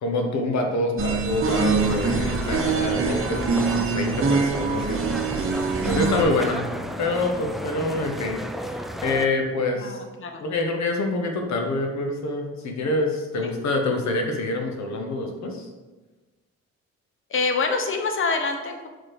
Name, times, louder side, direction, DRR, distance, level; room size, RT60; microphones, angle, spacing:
voice 1, 0.0-5.2 5.9-6.6 7.0-10.0 10.4-15.7, left 2 dB, 65° left, 3 dB, 1.2 m, -26 dB
sound 1, 1.0-6.2, right 4 dB, 45° right, 1.0 m, -24 dB
sound 2, 1.5-9.3, equal, ahead, 0.3 m, -33 dB
voice 2, 6.2-6.5 9.7-10.4 13.4-13.5 17.3-18.9, left 4 dB, 45° left, 4 dB, 0.9 m, -27 dB
4.9 x 4.1 x 4.7 m, 1.2 s
cardioid pair, 90°, 30 cm